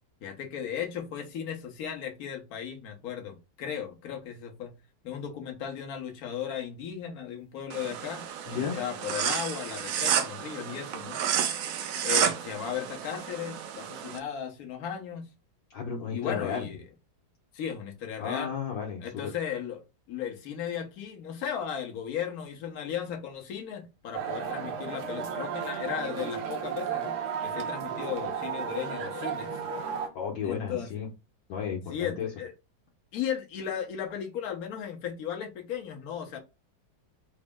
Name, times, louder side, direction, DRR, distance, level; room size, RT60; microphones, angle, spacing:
voice 1, 0.2-4.7 5.0-11.2 12.0-15.3 16.1-16.8 17.5-18.5 19.0-27.2 27.4-29.6 30.4-30.9 31.9-32.5 33.1-36.4, left 8 dB, 60° left, 1.2 m, -36 dB
sound 1, 7.7-14.2, right 8 dB, 85° right, 0.7 m, -31 dB
voice 2, 8.5-8.8 15.7-16.7 18.2-19.3 30.1-31.1 31.5-32.3, left 7 dB, 85° left, 1.5 m, -33 dB
sound 2, 24.1-30.1, right 7 dB, 65° right, 1.3 m, -34 dB
4.2 x 2.0 x 3.4 m
omnidirectional pair, 2.0 m